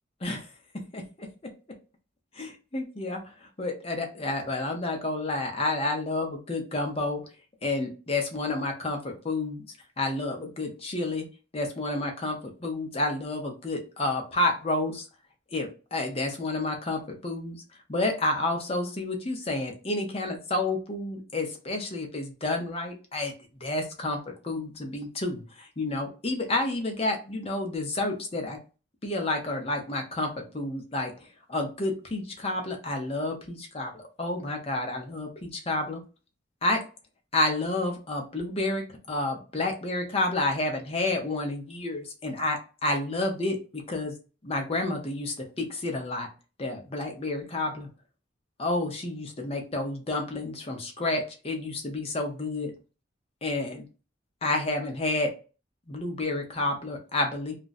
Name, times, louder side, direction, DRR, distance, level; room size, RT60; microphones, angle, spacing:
voice 1, 0.9-1.3 2.3-7.2 7.6-9.6 10.0-11.3 11.5-15.0 15.5-17.6 17.9-23.3 23.6-24.2 24.4-28.6 29.0-36.0 36.6-36.8 37.3-44.1 44.4-46.3 46.6-47.9 48.6-52.7 53.4-53.8 54.4-55.3 55.9-57.5, left 2 dB, 30° left, 3 dB, 0.7 m, -30 dB
2.4 x 2.2 x 4.0 m, 0.33 s
head